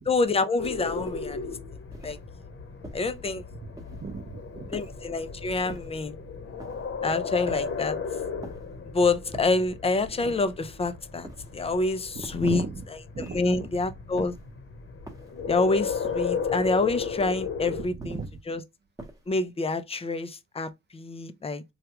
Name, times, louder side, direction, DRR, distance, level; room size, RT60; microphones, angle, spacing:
voice 1, 0.1-1.5 2.0-2.2 2.9-3.4 4.7-6.2 7.0-8.0 8.9-12.6 13.2-14.4 15.5-18.2 18.5-18.6 19.3-21.6, left 3 dB, 20° left, 0.5 m, -27 dB
sound 1, 0.6-17.8, left 5 dB, 45° left, 1.0 m, -35 dB
sound 2, 1.0-1.4 1.9-2.3 2.8-3.2 3.8-4.2 4.7-5.2 5.7-6.1 6.6-6.9 7.5-7.9 8.4-8.8 9.3-9.7 10.3-10.7 11.2-11.7 12.2-12.6 13.2-13.6 14.2-14.5 15.1-15.5 16.0-16.4 17.0-17.4 18.0-18.4 19.0-19.4, right 1 dB, 10° right, 1.0 m, -45 dB
voice 2, 3.6-4.7 12.3-12.8 13.1-13.7 17.7-18.3, right 4 dB, 35° right, 0.7 m, -37 dB
3.3 x 2.3 x 2.9 m
cardioid pair, 90°, 30 cm